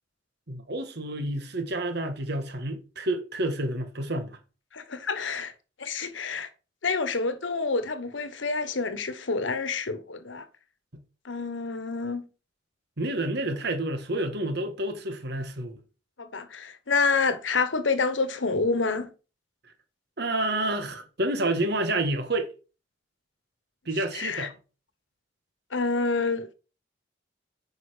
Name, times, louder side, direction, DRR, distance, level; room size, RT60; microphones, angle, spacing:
voice 1, 0.5-4.4 13.0-15.8 20.2-22.5 23.9-24.5, right 1 dB, 60° right, 1.5 m, -29 dB
voice 2, 4.7-5.5 5.8-6.5 6.8-10.5 11.2-12.3 16.2-19.1 24.1-24.5 25.7-26.5, left 4 dB, 80° left, 1.1 m, -28 dB
9.3 x 5.5 x 4.9 m
head